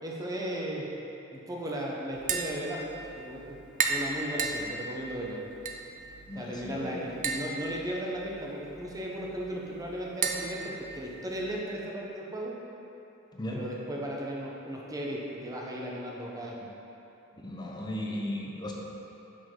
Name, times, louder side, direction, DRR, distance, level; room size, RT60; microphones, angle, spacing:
voice 1, 0.0-0.9 1.3-3.6 3.9-5.4 6.3-12.6 13.5-16.7, right 1 dB, 15° right, -3 dB, 0.7 m, -36 dB
Tap, 2.1-11.6, right 5 dB, 40° right, 0.4 m, -36 dB
voice 2, 6.3-7.1 13.3-13.6 17.4-18.7, left 1 dB, 20° left, -1 dB, 0.6 m, -36 dB
5.9 x 5.0 x 3.7 m, 2.9 s
head